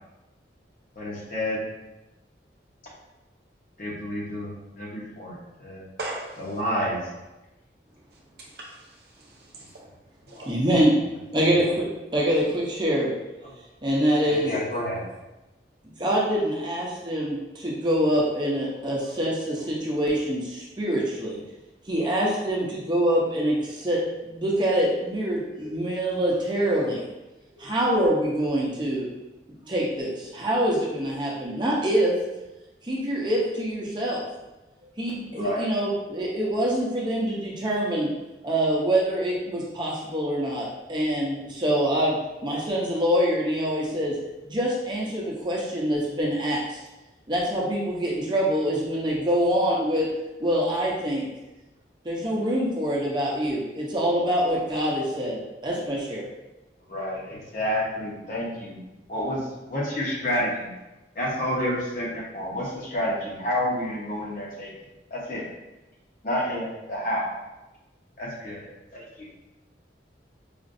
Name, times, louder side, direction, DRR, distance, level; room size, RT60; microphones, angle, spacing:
voice 1, 1.0-1.6 3.8-5.8 6.4-7.0 10.3-10.5 11.4-11.7 13.4-13.5 14.2-15.0 35.4-35.7 56.9-58.8 59.1-59.4 59.7-60.7 61.1-64.7 65.1-65.4 66.2-67.3 68.2-68.7 68.9-69.3, equal, 45° left, -4 dB, 0.9 m, -29 dB
voice 2, 6.0-6.5 8.4-9.8 10.3-10.5, right 2 dB, 60° right, -2 dB, 0.8 m, -39 dB
voice 3, 10.5-10.9 11.3-11.9 12.1-13.1 13.8-14.5 16.0-21.4 21.9-27.1 27.6-29.1 29.7-32.2 32.8-34.2 35.0-38.1 38.4-44.2 44.4-46.8 47.3-50.1 50.4-51.3 52.0-56.3, equal, 25° right, -4 dB, 0.7 m, -25 dB
5.0 x 2.5 x 2.5 m, 1.0 s
head